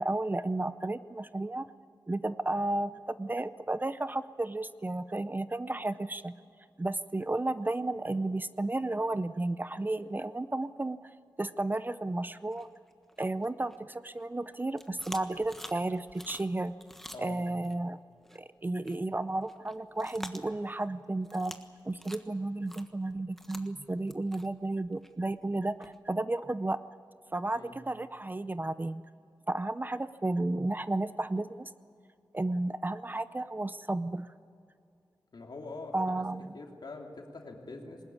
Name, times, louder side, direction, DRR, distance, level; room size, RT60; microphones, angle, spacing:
voice 1, 0.0-1.7 2.1-6.3 6.8-11.1 11.4-12.7 13.2-16.7 17.2-18.0 18.3-21.5 21.8-26.8 27.3-29.0 29.5-31.7 32.3-34.3 35.9-36.5, right 2 dB, 25° right, 14 dB, 0.5 m, -33 dB
sound 1, 12.5-14.2 14.5-17.7 18.2-18.4 18.8-19.0 19.2-20.9 21.2-21.6 21.9-26.0, equal, 5° left, 1.4 m, -48 dB
voice 2, 35.3-36.2 36.5-38.0, left 3 dB, 65° left, 1 dB, 3.2 m, -44 dB
20.5 x 20.0 x 9.6 m, 2.5 s
wide cardioid pair, 95°, 8 cm